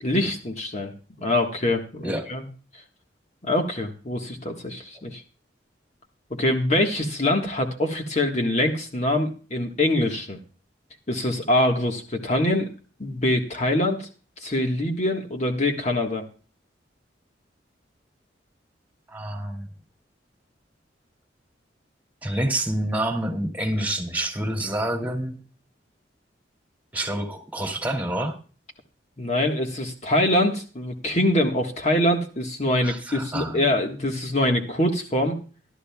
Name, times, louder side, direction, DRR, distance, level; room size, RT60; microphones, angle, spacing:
voice 1, 0.0-0.9 1.2-2.4 3.4-5.2 6.3-10.4 11.1-12.7 13.0-14.1 14.4-16.2 29.2-35.4, left 1 dB, 40° left, 3 dB, 1.5 m, -24 dB
voice 2, 19.1-19.7 22.2-25.4 26.9-28.4 32.8-33.7, right 1 dB, 10° right, 4 dB, 2.5 m, -27 dB
19.0 x 12.5 x 2.3 m, 0.36 s
head